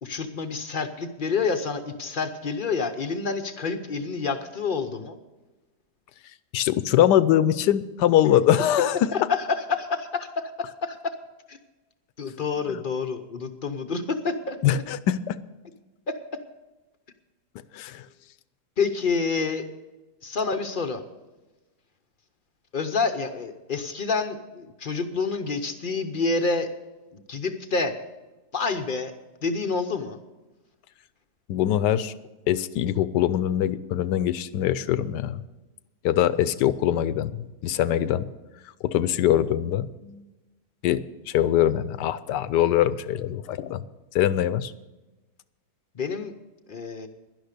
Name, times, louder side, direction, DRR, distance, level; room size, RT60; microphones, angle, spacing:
voice 1, 0.0-5.2 9.1-11.2 11.5-11.6 12.2-14.6 16.1-16.4 18.8-19.7 20.2-21.0 22.7-26.7 27.1-28.0 28.5-29.1 29.4-30.2 45.9-46.3 46.7-47.1, left 4 dB, 50° left, 7 dB, 0.6 m, -28 dB
voice 2, 6.5-9.1 12.7-12.8 14.6-15.4 17.7-18.1 31.5-32.1 32.5-35.4 36.0-38.3 38.8-40.3 40.8-43.8 44.1-44.7, left 11 dB, 80° left, 15 dB, 1.2 m, -23 dB
11.5 x 11.0 x 6.6 m, 1.1 s
omnidirectional pair, 1.8 m